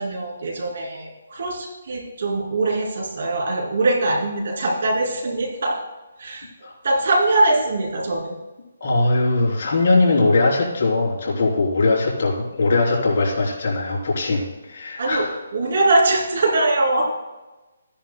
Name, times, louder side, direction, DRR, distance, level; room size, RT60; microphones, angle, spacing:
voice 1, 0.0-5.8 6.2-6.5 6.8-8.3 15.0-17.0, right 2 dB, 60° right, 0 dB, 2.7 m, -22 dB
voice 2, 8.8-15.3, left 3 dB, 50° left, -3 dB, 3.4 m, -20 dB
15.0 x 10.0 x 2.2 m, 1.1 s
hypercardioid pair, 160°, 0 cm